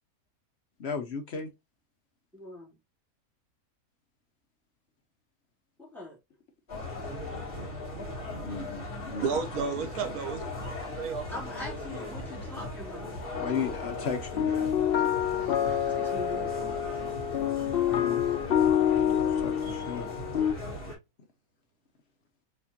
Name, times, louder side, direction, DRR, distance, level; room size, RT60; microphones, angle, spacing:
voice 1, 0.8-1.5 8.4-10.2 13.4-14.5 17.6-18.2 19.1-20.1, left 5 dB, 55° left, 0.9 m, -36 dB
voice 2, 2.3-2.8 5.8-6.2 11.3-14.2 15.9-16.6, left 2 dB, ahead, 2.5 m, -42 dB
sound 1, 6.7-20.9, left 1 dB, 35° left, 2.8 m, -38 dB
voice 3, 9.2-11.3 15.4-15.9 19.6-19.7, right 6 dB, 80° right, 1.3 m, -33 dB
sound 2, 13.3-20.5, left 9 dB, 75° left, 0.5 m, -28 dB
4.3 x 3.7 x 2.8 m
omnidirectional pair, 1.5 m